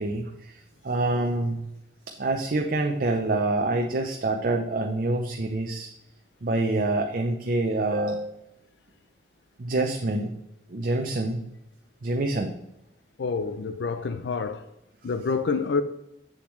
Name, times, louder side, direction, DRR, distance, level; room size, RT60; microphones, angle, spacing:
voice 1, 0.0-1.7 2.2-5.9 6.4-8.3 9.6-10.3 10.7-11.5 12.0-12.5, right 2 dB, 50° right, 0.6 m, -26 dB
voice 2, 13.2-14.7 15.0-15.8, left 4 dB, 75° left, 0.4 m, -27 dB
8.0 x 6.8 x 3.1 m
head